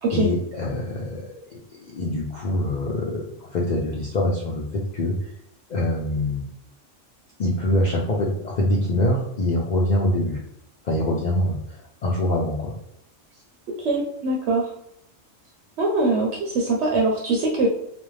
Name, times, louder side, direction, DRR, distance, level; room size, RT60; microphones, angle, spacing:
voice 1, 0.1-1.6 1.8-4.6 4.9-5.1 5.7-6.4 7.4-10.4 10.8-12.7, left 1 dB, 65° left, -3 dB, 0.4 m, -24 dB
voice 2, 13.8-14.7 15.8-17.7, right 2 dB, 65° right, 0 dB, 0.8 m, -22 dB
2.5 x 2.1 x 3.1 m, 0.76 s
omnidirectional pair, 1.3 m